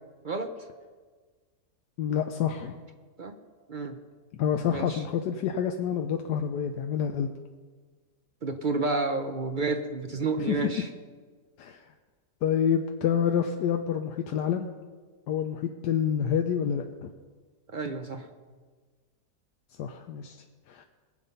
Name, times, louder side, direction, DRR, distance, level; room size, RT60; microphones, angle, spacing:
voice 1, 2.0-2.7 4.4-7.3 10.4-10.6 11.6-11.8 12.4-14.7 15.3-17.1 19.8-20.4 20.7-20.8, left 8 dB, 85° left, 5 dB, 1.3 m, -28 dB
voice 2, 4.7-5.0 8.4-10.9 17.7-18.3, right 3 dB, 50° right, 7 dB, 0.5 m, -30 dB
21.0 x 7.7 x 5.4 m, 1.5 s
omnidirectional pair, 1.8 m